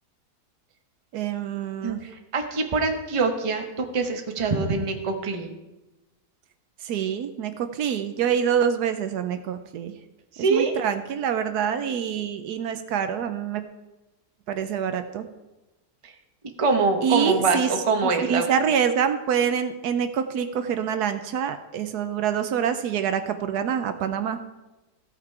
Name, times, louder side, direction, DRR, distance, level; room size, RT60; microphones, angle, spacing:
voice 1, 1.1-2.0 6.8-9.9 10.5-13.6 14.5-15.2 17.0-17.7 18.0-24.4, right 8 dB, 75° right, 9 dB, 1.2 m, -26 dB
voice 2, 1.8-5.5 10.3-10.7 16.0-16.1 16.6-18.5, right 4 dB, 25° right, 4 dB, 0.8 m, -24 dB
15.5 x 5.8 x 4.6 m, 1.0 s
omnidirectional pair, 1.8 m